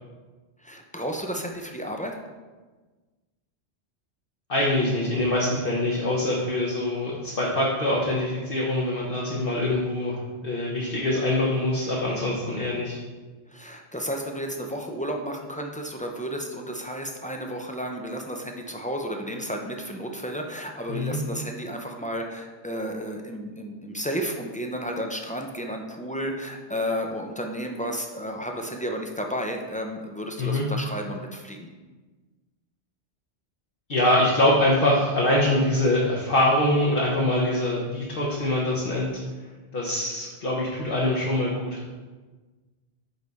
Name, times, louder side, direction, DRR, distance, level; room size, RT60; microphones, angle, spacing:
voice 1, 0.6-2.2 12.6-12.7 13.5-31.7, equal, 10° left, 2 dB, 0.3 m, -32 dB
voice 2, 4.5-13.0 20.9-21.2 30.4-30.7 33.9-39.1 39.7-41.8, left 1 dB, 55° left, -5 dB, 1.1 m, -24 dB
9.6 x 3.5 x 4.0 m, 1.3 s
omnidirectional pair, 1.2 m